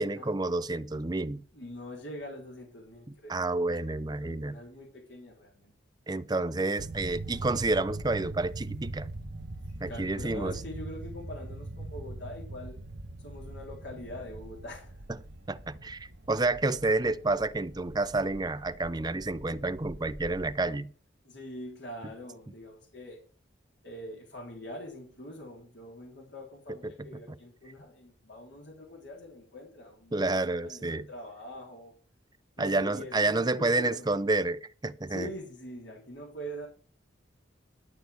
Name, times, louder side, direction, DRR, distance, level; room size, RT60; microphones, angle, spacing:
voice 1, 0.0-1.4 3.3-4.6 6.1-9.1 9.8-10.6 15.1-15.2 15.5-20.9 30.1-31.1 32.6-35.3, right 2 dB, 20° right, 0.5 m, -29 dB
voice 2, 1.5-3.4 3.7-5.7 9.7-12.8 13.2-15.0 21.2-23.2 23.8-31.9 32.6-34.1 35.1-36.7, equal, 65° left, 3.5 m, -44 dB
sound 1, 6.8-20.7, right 2 dB, 60° right, 1.3 m, -42 dB
12.0 x 5.8 x 6.6 m
head